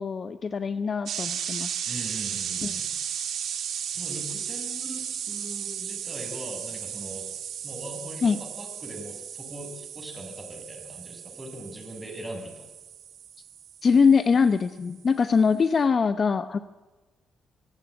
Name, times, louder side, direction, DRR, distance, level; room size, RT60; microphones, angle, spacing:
voice 1, 0.0-1.7 2.6-2.7 8.2-8.4 13.8-16.7, left 5 dB, 40° left, 13 dB, 0.9 m, -23 dB
sound 1, 1.1-14.7, right 8 dB, 70° right, 3.4 m, -35 dB
voice 2, 1.8-2.9 3.9-7.3 7.6-12.7, right 1 dB, 10° right, 2 dB, 7.6 m, -40 dB
24.5 x 16.5 x 9.9 m, 1.2 s
cardioid pair, 90°, 0 cm